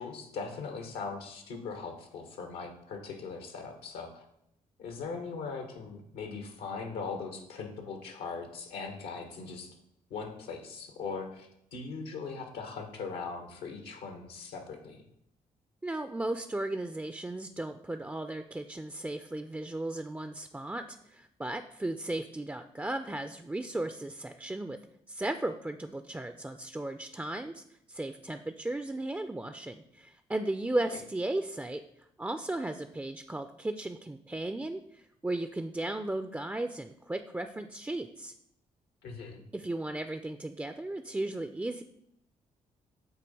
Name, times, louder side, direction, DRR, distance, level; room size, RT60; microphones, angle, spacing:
voice 1, 0.0-4.2 4.8-9.7 10.1-15.0 30.9-31.0 39.0-39.4, left 4 dB, 80° left, 5 dB, 1.1 m, -40 dB
voice 2, 15.8-24.8 25.1-27.6 27.9-31.8 32.2-38.3 39.5-41.8, right 2 dB, 10° right, 8 dB, 0.4 m, -35 dB
7.6 x 2.8 x 5.3 m, 0.76 s
hypercardioid pair, 45°, 16 cm